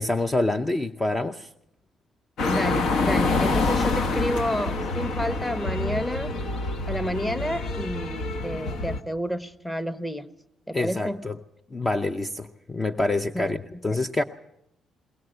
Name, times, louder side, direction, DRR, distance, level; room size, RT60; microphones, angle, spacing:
voice 1, 0.0-1.5 10.7-11.4 11.7-14.2, left 2 dB, 25° left, 9 dB, 0.7 m, -26 dB
sound 1, 2.4-9.0, left 3 dB, 70° left, 1.3 m, -26 dB
voice 2, 2.5-6.4 6.9-10.3 10.7-11.2 13.3-13.6, equal, 5° left, 14 dB, 1.1 m, -30 dB
21.5 x 18.5 x 8.0 m, 0.81 s
cardioid pair, 90°, 0 cm